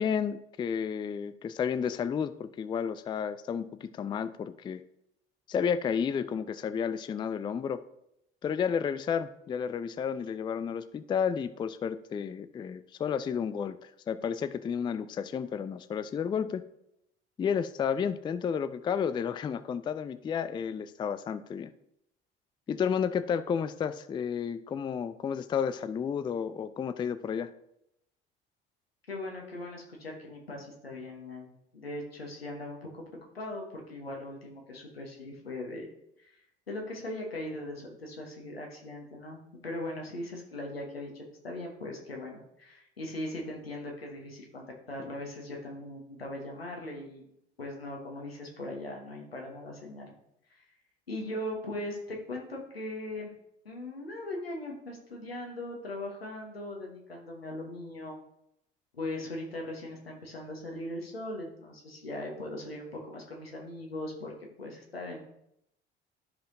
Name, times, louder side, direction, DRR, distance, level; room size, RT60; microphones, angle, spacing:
voice 1, 0.0-4.8 5.5-7.8 8.4-16.6 17.4-21.7 22.7-27.5, left 7 dB, 15° left, 13 dB, 0.3 m, -31 dB
voice 2, 29.1-33.0 33.3-35.9 36.2-36.4 36.7-47.2 47.6-50.1 50.5-50.6 51.1-53.3 53.6-58.2 58.9-64.3 64.6-65.2, left 1 dB, 85° left, 0 dB, 1.1 m, -39 dB
12.5 x 5.0 x 2.6 m, 0.80 s
figure-of-eight pair, 55°, 29 cm